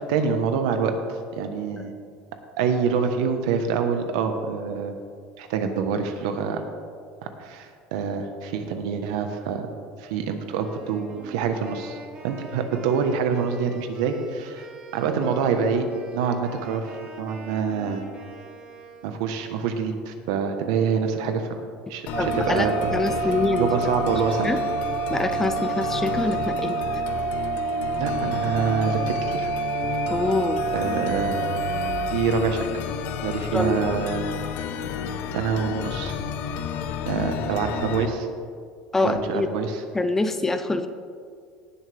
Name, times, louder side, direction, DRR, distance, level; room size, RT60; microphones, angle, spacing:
voice 1, 0.1-0.9 1.3-1.9 2.6-5.0 5.4-6.6 7.4-9.7 10.0-12.0 12.2-14.7 14.9-15.9 16.1-18.0 19.0-21.6 21.9-23.3 23.6-24.5 28.0-29.5 30.7-31.4 32.1-32.7 33.2-34.3 34.5-34.6 35.3-36.1 37.0-38.3 38.9-39.8, right 6 dB, 85° right, 6 dB, 1.2 m, -26 dB
Wind instrument woodwind instrument, 10.5-19.2, right 2 dB, 35° right, 2.1 m, -45 dB
sound 1, 22.1-38.1, left 7 dB, 60° left, 0.7 m, -31 dB
sound 2, 22.1-32.1, right 6 dB, 65° right, 0.5 m, -28 dB
voice 2, 22.2-23.7 24.4-24.6 25.1-26.8 30.1-30.6 33.5-33.8 38.9-39.5 39.9-40.9, left 3 dB, 10° left, 10 dB, 0.5 m, -25 dB
18.0 x 7.1 x 3.5 m, 2.1 s
cardioid pair, 145°, 3 cm